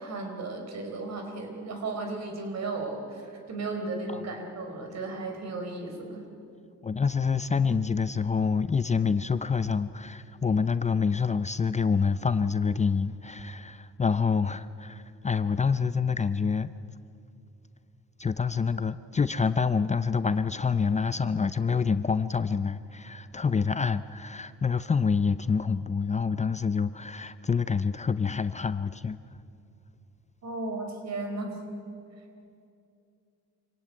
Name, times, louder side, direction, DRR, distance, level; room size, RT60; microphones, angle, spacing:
voice 1, 0.0-6.3 30.4-31.6, right 3 dB, 60° right, 4.4 m, -35 dB
voice 2, 6.8-16.7 18.2-29.2, left 5 dB, 25° left, 0.6 m, -27 dB
26.0 x 17.0 x 9.0 m
cardioid pair, 90°, 30 cm